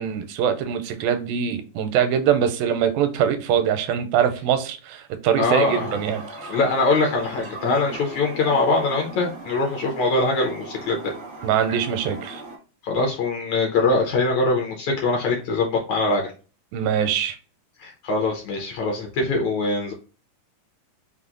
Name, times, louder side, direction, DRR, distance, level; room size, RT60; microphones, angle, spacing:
voice 1, 0.0-6.3 11.4-12.4 16.7-17.4, right 8 dB, 85° right, 2.4 m, -23 dB
voice 2, 5.4-5.9 6.5-11.1 12.8-16.3 17.8-19.9, left 3 dB, 70° left, 1.8 m, -22 dB
Toilet flush, 5.6-12.6, right 2 dB, 60° right, 0.8 m, -38 dB
5.8 x 2.1 x 3.7 m
omnidirectional pair, 4.0 m